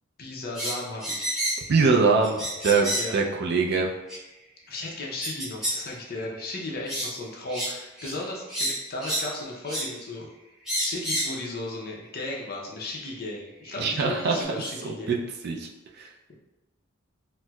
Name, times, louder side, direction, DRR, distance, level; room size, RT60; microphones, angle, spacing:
voice 1, 0.2-1.3 2.9-3.2 4.7-10.3 10.8-15.2, left 2 dB, 50° left, -2 dB, 0.6 m, -35 dB
sound 1, 0.6-1.7 2.2-3.2 4.1-4.2 5.2-5.8 6.2-6.4 6.9-7.1 7.5-7.7 8.0-8.2 8.5-9.3 9.7-9.9 10.7-11.4 12.4-12.5 13.7-13.8 14.3-14.4, equal, 5° right, 0.8 m, -30 dB
voice 2, 1.7-3.9 13.8-14.4 14.8-15.2 15.4-15.7 16.0-16.1, right 4 dB, 55° right, 1 dB, 0.4 m, -23 dB
4.2 x 2.0 x 2.3 m, 1.0 s
head